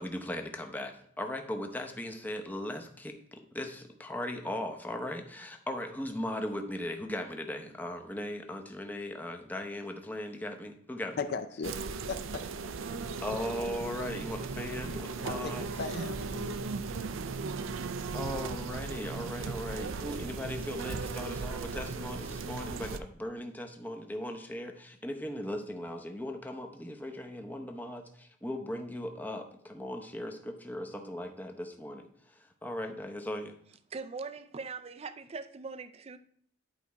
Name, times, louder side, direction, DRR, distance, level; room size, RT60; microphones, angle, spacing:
voice 1, 0.0-11.2 13.2-15.7 18.1-33.5, left 1 dB, 10° left, 0.7 m, -38 dB
voice 2, 11.2-11.8 12.1-12.2 15.2-16.6, left 4 dB, 55° left, 0.5 m, -37 dB
sound 1, 11.6-23.0, right 4 dB, 85° right, 0.5 m, -37 dB
voice 3, 33.9-36.2, right 4 dB, 30° right, 0.4 m, -41 dB
10.5 x 4.1 x 4.7 m
head